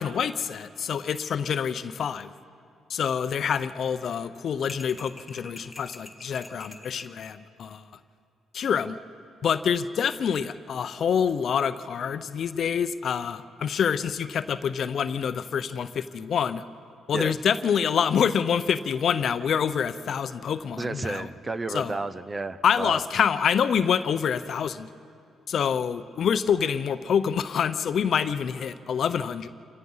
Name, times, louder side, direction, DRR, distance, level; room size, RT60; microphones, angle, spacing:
voice 1, 0.0-2.3 2.9-7.8 8.5-9.0 9.4-16.6 17.1-21.3 21.7-21.9 22.6-24.9 25.5-29.5, left 7 dB, 60° left, 12 dB, 0.7 m, -26 dB
sound 1, 4.7-7.2, left 2 dB, 15° left, 2.0 m, -45 dB
voice 2, 20.8-23.0, right 3 dB, 25° right, 12 dB, 0.8 m, -31 dB
28.5 x 16.5 x 5.6 m, 2.6 s
cardioid pair, 80°, 0 cm